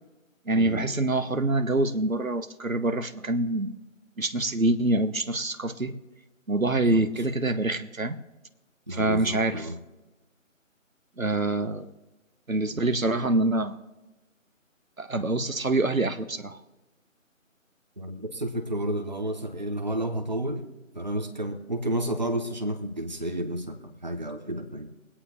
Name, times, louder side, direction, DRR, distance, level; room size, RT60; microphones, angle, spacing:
voice 1, 0.5-3.8 4.2-6.0 6.5-8.2 8.9-9.7 11.2-11.9 12.5-13.8 15.0-16.6, right 2 dB, 75° right, 9 dB, 1.2 m, -25 dB
voice 2, 8.9-9.8 18.0-20.7 20.9-24.9, right 1 dB, 30° right, 5 dB, 1.2 m, -31 dB
23.0 x 8.7 x 3.1 m, 1.1 s
figure-of-eight pair, 165°, 41 cm